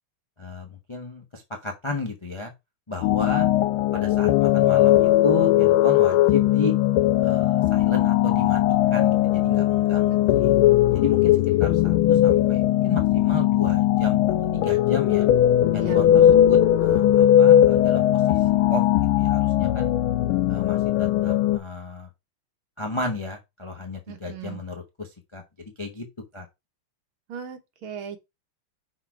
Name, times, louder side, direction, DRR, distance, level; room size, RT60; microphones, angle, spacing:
voice 1, 0.4-2.5 2.9-3.5 3.9-6.7 7.2-8.6 8.9-10.5 10.9-11.3 11.6-14.2 14.5-15.3 15.7-18.4 18.7-19.9 20.5-22.1 22.8-25.4 25.8-26.1 26.3-26.5, left 2 dB, 40° left, 0.4 m, -33 dB
sound 1, 3.0-21.6, left 12 dB, 85° left, 1.4 m, -19 dB
voice 2, 10.1-10.6 15.8-16.3 24.1-24.6 27.3-28.2, right 8 dB, 80° right, 2.0 m, -38 dB
5.8 x 4.2 x 4.5 m
omnidirectional pair, 2.3 m